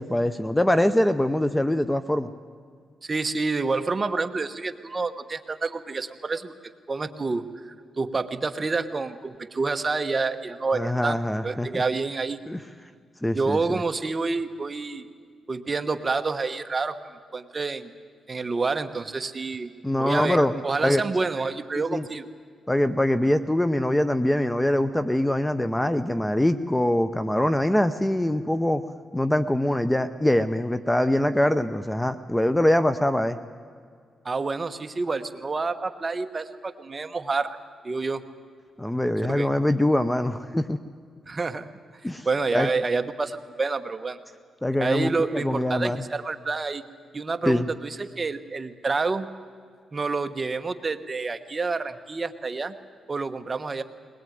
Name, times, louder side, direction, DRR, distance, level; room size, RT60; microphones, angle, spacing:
voice 1, 0.0-2.3 10.7-11.8 12.5-12.6 13.2-13.8 19.8-21.0 21.8-22.0 22.7-28.8 29.1-33.4 38.8-40.8 42.0-42.3 42.5-42.7 44.6-46.0 47.5-47.7, left 1 dB, 10° left, 12 dB, 0.7 m, -23 dB
voice 2, 3.0-6.5 6.9-11.2 11.4-12.4 13.3-15.1 15.5-17.0 17.3-17.9 18.3-19.7 20.0-22.2 34.2-37.6 37.8-38.2 39.2-39.5 41.3-41.7 42.0-44.2 44.8-46.8 47.1-49.3 49.9-52.7 53.1-53.8, right 3 dB, 30° right, 8 dB, 1.2 m, -28 dB
21.5 x 20.5 x 9.3 m, 2.1 s
cardioid pair, 110°, 0 cm